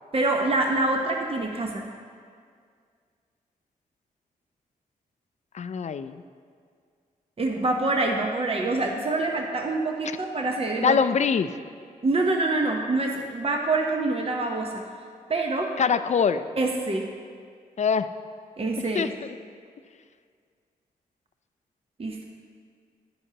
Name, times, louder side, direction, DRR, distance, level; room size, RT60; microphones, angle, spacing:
voice 1, 0.1-1.8 7.4-11.0 12.0-14.8 15.3-15.7 16.6-17.0 18.6-19.1 22.0-22.2, right 2 dB, 35° right, 1 dB, 0.9 m, -25 dB
voice 2, 5.5-6.1 10.8-11.5 15.8-16.4 17.8-18.1 18.9-19.3, left 6 dB, 45° left, 12 dB, 0.4 m, -23 dB
9.8 x 9.6 x 2.9 m, 2.1 s
cardioid pair, 55°, 16 cm